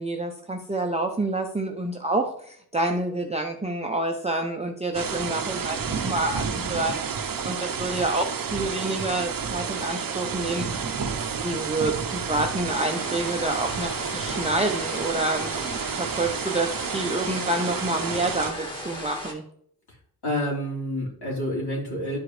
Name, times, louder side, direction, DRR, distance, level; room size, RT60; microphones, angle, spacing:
voice 1, 0.0-7.0 7.4-11.1 11.4-19.4, right 2 dB, 15° right, 2 dB, 0.6 m, -28 dB
sound 1, 4.9-18.5, right 6 dB, 60° right, 0.7 m, -30 dB
sound 2, 12.6-19.3, equal, 15° left, 1.6 m, -37 dB
voice 2, 20.2-22.2, equal, 80° left, -4 dB, 3.5 m, -28 dB
11.0 x 4.9 x 3.2 m, 0.63 s
wide cardioid pair, 120°, 39 cm